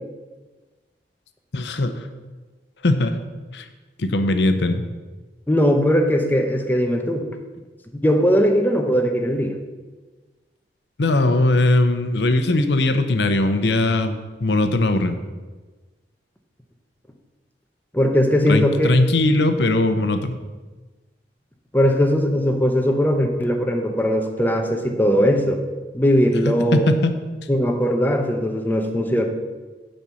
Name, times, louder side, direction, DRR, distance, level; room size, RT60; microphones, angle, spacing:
voice 1, 1.5-2.1 2.8-3.2 3.5-3.7 4.0-4.8 11.0-15.1 18.5-20.4 26.7-27.1, left 2 dB, 80° left, 9 dB, 0.7 m, -19 dB
voice 2, 5.5-7.3 8.0-9.5 17.9-18.9 21.7-25.6 25.9-26.9 27.5-29.3, equal, 10° left, 4 dB, 0.8 m, -19 dB
7.5 x 5.5 x 6.9 m, 1.3 s
head